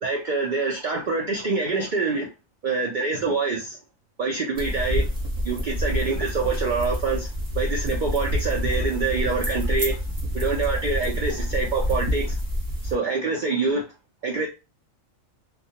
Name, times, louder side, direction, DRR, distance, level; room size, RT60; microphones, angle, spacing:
voice 1, 0.0-2.3 2.6-3.8 4.2-5.1 5.4-7.3 7.5-10.0 10.3-12.4 12.8-13.8 14.2-14.5, right 4 dB, 85° right, 0.4 m, -25 dB
sound 1, 4.5-12.9, left 1 dB, 30° right, 0.7 m, -27 dB
2.3 x 2.1 x 2.7 m
omnidirectional pair, 1.5 m